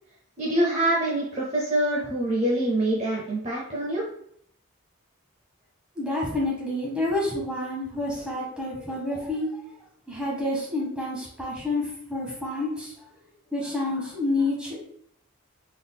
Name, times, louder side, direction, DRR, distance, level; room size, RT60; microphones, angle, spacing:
voice 1, 0.4-4.0, right 1 dB, 30° right, -4 dB, 0.6 m, -25 dB
voice 2, 6.0-9.5 10.1-11.8 12.1-12.9 13.5-14.8, left 2 dB, 5° right, -4 dB, 1.0 m, -28 dB
3.8 x 3.5 x 2.2 m, 0.67 s
head